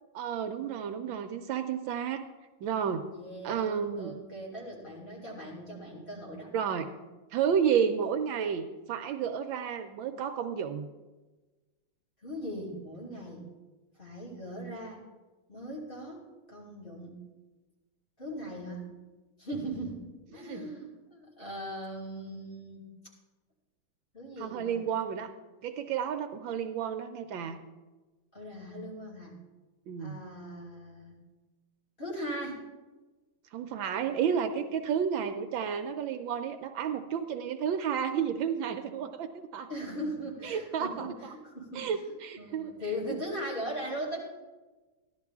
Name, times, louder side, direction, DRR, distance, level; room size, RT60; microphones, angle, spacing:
voice 1, 0.1-2.2 2.6-3.0 3.4-4.1 6.5-6.9 7.3-10.9 20.3-20.7 24.4-25.3 25.6-27.6 29.9-30.2 33.5-39.7 40.4-41.4 41.7-42.7, right 7 dB, 75° right, 8 dB, 1.3 m, -31 dB
voice 2, 3.1-6.5 12.2-13.5 14.0-15.0 15.5-17.2 18.2-18.8 19.4-20.0 20.3-22.9 24.1-25.1 28.3-29.3 30.0-31.1 32.0-32.6 39.7-44.2, equal, 25° left, -4 dB, 2.9 m, -39 dB
15.0 x 11.5 x 3.6 m, 1.2 s
omnidirectional pair, 2.3 m